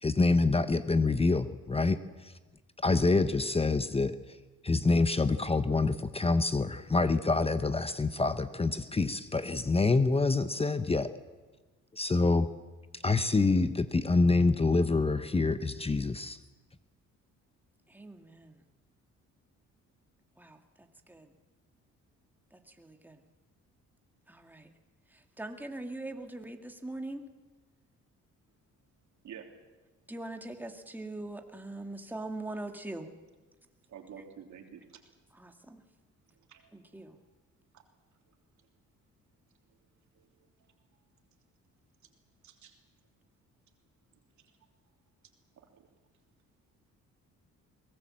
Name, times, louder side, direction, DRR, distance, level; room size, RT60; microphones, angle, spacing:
voice 1, 0.0-2.3 2.8-4.2 4.6-11.1 11.9-12.5 12.9-16.4, left 3 dB, 20° left, 11 dB, 0.9 m, -26 dB
voice 2, 17.9-18.5 20.4-20.6 21.1-21.3 22.8-23.2 24.3-24.7 25.4-27.2 30.1-33.1 35.3-35.8 36.7-37.1, right 2 dB, 5° right, 4 dB, 2.0 m, -41 dB
voice 3, 33.9-34.8 36.5-36.6 40.2-40.3 42.4-42.7 45.7-45.8, right 8 dB, 70° right, 3 dB, 3.2 m, -48 dB
22.5 x 19.0 x 7.6 m, 1.3 s
cardioid pair, 90°, 30 cm